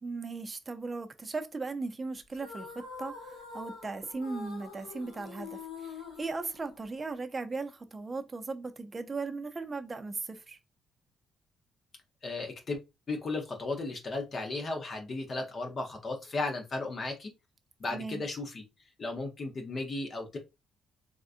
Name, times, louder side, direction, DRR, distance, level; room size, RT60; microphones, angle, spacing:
voice 1, 0.0-10.6 17.9-18.2, right 3 dB, 30° right, 0.4 m, -37 dB
sound 1, 2.3-7.1, left 4 dB, 85° left, 2.1 m, -45 dB
voice 2, 12.2-12.8 13.1-17.3 17.8-18.6 19.0-20.4, left 3 dB, 45° left, 0.7 m, -35 dB
3.5 x 2.4 x 2.4 m
cardioid pair, 90°, 0 cm